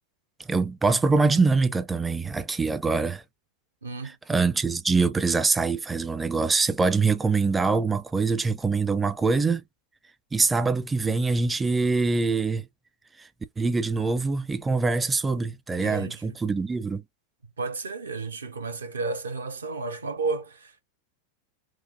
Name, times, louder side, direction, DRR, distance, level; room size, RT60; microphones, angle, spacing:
voice 1, 0.5-3.2 4.0-9.6 10.3-12.7 13.2-13.3 13.6-17.0, right 4 dB, 10° right, 0.5 m, -24 dB
voice 2, 3.8-4.2 15.8-16.1 17.6-20.8, right 3 dB, 75° right, 0.8 m, -32 dB
4.7 x 2.0 x 2.5 m
figure-of-eight pair, 90°, 0 cm